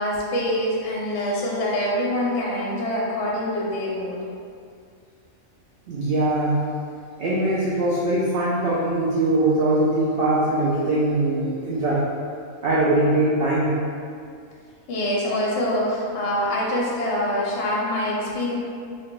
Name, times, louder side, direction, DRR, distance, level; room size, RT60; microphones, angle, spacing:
voice 1, 0.0-4.2 14.9-18.5, left 1 dB, 65° left, -4 dB, 0.8 m, -25 dB
voice 2, 5.9-6.6 7.2-12.1 12.6-13.8, right 1 dB, 65° right, -8 dB, 0.6 m, -21 dB
2.9 x 2.5 x 2.9 m, 2.3 s
omnidirectional pair, 1.4 m